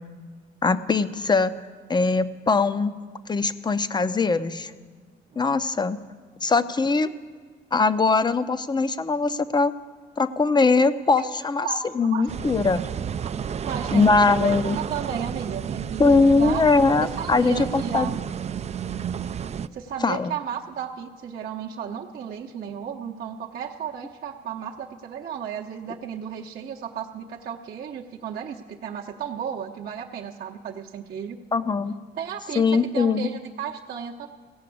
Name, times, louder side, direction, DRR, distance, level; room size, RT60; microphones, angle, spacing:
voice 1, 0.6-1.6 1.9-2.9 3.3-4.7 5.4-6.0 6.4-7.1 7.7-9.7 10.2-11.7 12.0-12.8 13.9-14.8 16.0-18.1 20.0-20.3 31.5-32.0 32.6-33.3, left 4 dB, 20° left, 13 dB, 0.5 m, -21 dB
voice 2, 11.6-12.3 13.2-16.6 17.0-18.1 19.7-31.4 32.2-34.3, right 8 dB, 50° right, -3 dB, 0.8 m, -34 dB
sound 1, 12.3-19.7, right 8 dB, 35° right, 0.3 m, -31 dB
16.0 x 5.9 x 8.5 m, 1.6 s
cardioid pair, 90°, 20 cm